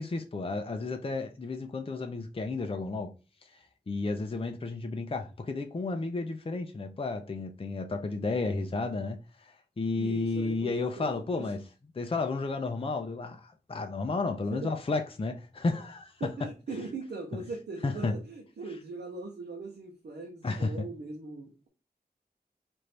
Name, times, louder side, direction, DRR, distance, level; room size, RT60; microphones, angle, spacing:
voice 1, 0.0-3.1 3.5-11.6 11.9-16.5 17.8-18.2 20.4-20.9, left 3 dB, 35° left, 0.5 m, -32 dB
voice 2, 10.0-11.5 14.5-14.7 16.2-21.7, right 3 dB, 90° right, 0.8 m, -40 dB
4.3 x 2.6 x 3.2 m
wide cardioid pair, 60°, 17 cm